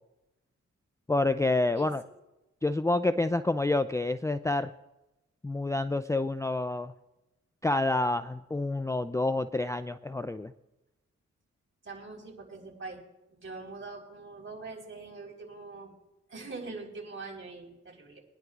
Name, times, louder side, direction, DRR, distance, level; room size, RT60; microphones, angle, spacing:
voice 1, 1.1-2.0 2.6-4.7 5.4-6.9 7.6-10.5, left 2 dB, 10° left, 10 dB, 0.4 m, -28 dB
voice 2, 11.8-13.0 13.3-15.9 16.3-18.2, right 3 dB, 45° right, -1 dB, 4.4 m, -43 dB
23.5 x 10.5 x 2.5 m, 0.97 s
cardioid pair, 55°, 29 cm